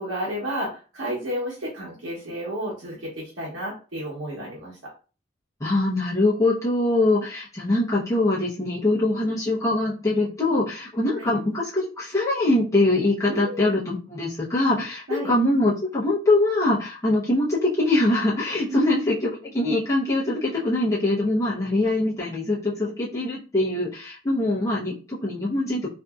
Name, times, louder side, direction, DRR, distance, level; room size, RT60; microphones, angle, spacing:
voice 1, 0.0-4.9 11.2-11.3 13.3-13.8 15.1-15.3 18.7-18.8, equal, 75° right, -5 dB, 0.9 m, -32 dB
voice 2, 5.6-25.9, left 2 dB, 15° left, -7 dB, 0.7 m, -23 dB
2.7 x 2.6 x 2.3 m, 0.34 s
head